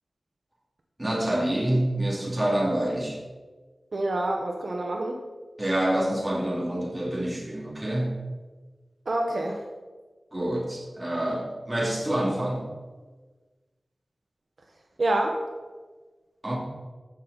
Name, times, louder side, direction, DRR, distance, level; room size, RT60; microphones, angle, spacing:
voice 1, 1.0-3.2 5.6-8.2 10.3-12.6 16.4-16.6, right 1 dB, 15° right, -3 dB, 2.5 m, -27 dB
voice 2, 3.9-5.2 9.1-9.6 15.0-15.4, right 1 dB, 65° right, 1 dB, 1.0 m, -27 dB
14.5 x 6.1 x 4.0 m, 1.3 s
wide cardioid pair, 90°, 0 cm